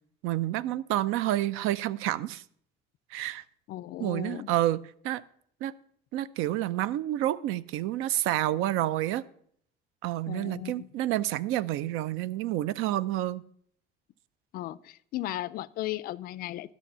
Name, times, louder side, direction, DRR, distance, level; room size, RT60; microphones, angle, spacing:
voice 1, 0.2-2.4 3.1-3.4 4.0-4.8 5.0-5.2 5.6-5.7 6.1-9.2 10.0-13.4, right 14 dB, 75° right, 19 dB, 0.5 m, -29 dB
voice 2, 3.7-4.5 10.3-10.9 14.5-16.7, left 15 dB, 45° left, 18 dB, 0.4 m, -36 dB
11.5 x 6.2 x 6.8 m, 0.63 s
cardioid pair, 155°, 21 cm